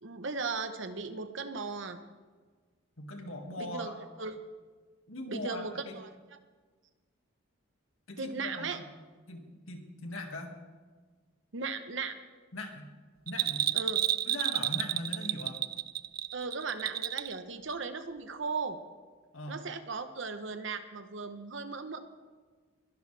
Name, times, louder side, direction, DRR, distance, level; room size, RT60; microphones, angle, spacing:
voice 1, 0.0-2.0 3.6-4.5 5.3-6.1 8.2-8.8 11.5-12.2 13.7-14.0 16.3-18.8 19.5-22.0, right 4 dB, 65° right, 9 dB, 0.9 m, -37 dB
voice 2, 3.0-4.0 5.1-6.0 8.1-8.8 9.3-10.5 12.5-12.9 13.3-13.7 14.3-15.6 19.3-19.6, left 1 dB, 90° left, 3 dB, 2.1 m, -40 dB
Bell, 13.3-17.4 17.7-17.8, right 12 dB, 50° right, 0.4 m, -31 dB
22.0 x 12.0 x 3.4 m, 1.4 s
head